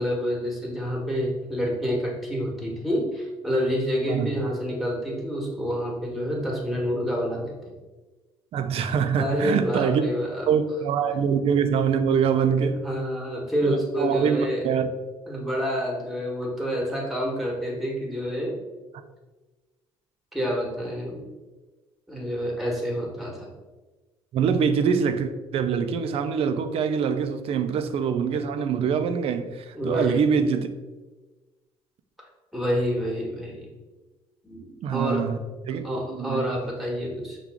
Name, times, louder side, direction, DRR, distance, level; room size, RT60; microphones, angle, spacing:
voice 1, 0.0-7.7 9.2-10.5 12.8-14.7 15.3-18.5 20.3-21.2 22.1-23.5 29.7-30.2 32.5-33.7 34.4-35.3 35.8-37.4, equal, ahead, 1.3 m, -28 dB
voice 2, 8.5-10.0 10.5-12.9 13.6-14.9 24.3-30.7 34.8-35.4 35.6-35.8 36.1-36.7, right 6 dB, 60° right, 0.4 m, -24 dB
5.7 x 2.4 x 3.6 m
cardioid pair, 90°, 11 cm